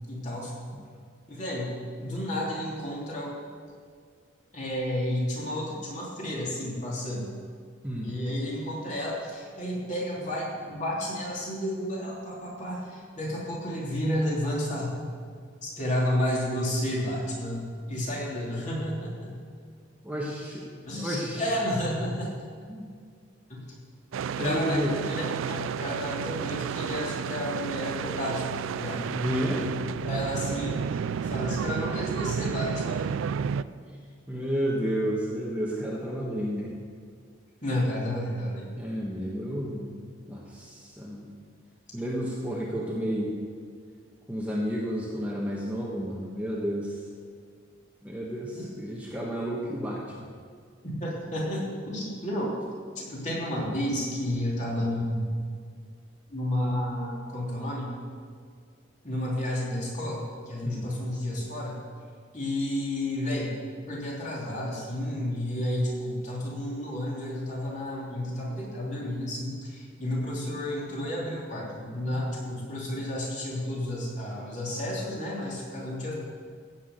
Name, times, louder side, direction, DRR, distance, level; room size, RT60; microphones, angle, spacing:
voice 1, 0.1-0.5 1.3-3.3 4.5-7.3 8.0-14.9 15.6-19.3 20.9-22.3 23.5-23.6 24.4-29.1 30.0-33.1 37.6-38.7 48.5-48.7 51.0-52.6 52.9-55.2 56.3-57.9 59.0-61.8 62.3-63.5 63.9-76.1, left 1 dB, 35° left, -5 dB, 3.2 m, -31 dB
voice 2, 20.0-20.7 21.0-21.5 22.7-22.9 24.4-24.9 29.1-29.7 33.8-33.9 34.3-36.7 38.8-40.0 40.3-41.3 41.9-43.3 44.3-47.0 48.0-50.3 60.6-60.9, equal, 5° right, -4 dB, 1.3 m, -31 dB
sound 1, 24.1-33.6, right 7 dB, 80° right, 0.3 m, -31 dB
15.0 x 6.0 x 8.1 m, 2.1 s
head